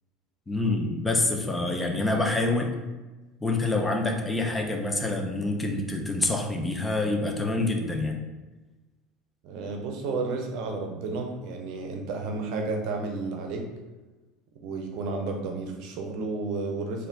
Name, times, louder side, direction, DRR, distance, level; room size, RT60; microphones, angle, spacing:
voice 1, 0.5-2.7 3.4-8.2, left 2 dB, 15° left, 2 dB, 0.7 m, -26 dB
voice 2, 9.4-13.6 14.6-17.1, right 3 dB, 60° right, 3 dB, 0.7 m, -32 dB
4.4 x 2.6 x 3.5 m, 1.2 s
hypercardioid pair, 70°, 0 cm